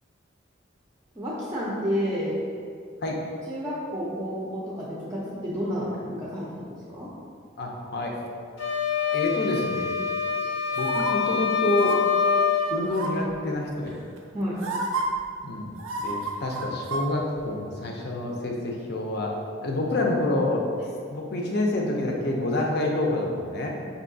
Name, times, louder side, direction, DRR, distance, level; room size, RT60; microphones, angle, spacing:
voice 1, 1.2-2.4 3.5-7.1 14.3-14.6, equal, 15° right, -7 dB, 0.5 m, -30 dB
voice 2, 7.6-8.1 9.1-9.9 10.8-12.0 12.7-13.9 15.4-15.8 16.0-19.4 19.6-20.6 21.1-23.7, left 2 dB, 55° left, 0 dB, 0.5 m, -27 dB
sound 1, 8.6-12.8, left 7 dB, 90° left, 0.9 m, -25 dB
sound 2, 10.8-11.1 11.7-12.0 12.9-13.3 14.2-14.3 14.6-15.0 15.8-17.1 17.4-17.5, right 3 dB, 85° right, 0.4 m, -30 dB
5.5 x 2.7 x 2.6 m, 2.3 s
head